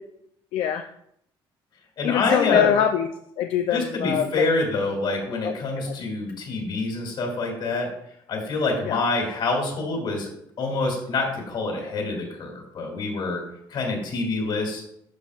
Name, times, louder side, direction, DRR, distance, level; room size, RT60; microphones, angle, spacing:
voice 1, 0.5-0.9 2.0-3.1 3.4-4.5 5.4-5.5 8.9-9.0, left 10 dB, 80° left, 5 dB, 0.5 m, -23 dB
voice 2, 2.0-2.7 3.7-7.9 8.3-10.3 10.6-13.4 13.7-14.8, left 3 dB, 60° left, 0 dB, 2.5 m, -26 dB
11.5 x 5.5 x 2.4 m, 0.74 s
cardioid pair, 125°, 9 cm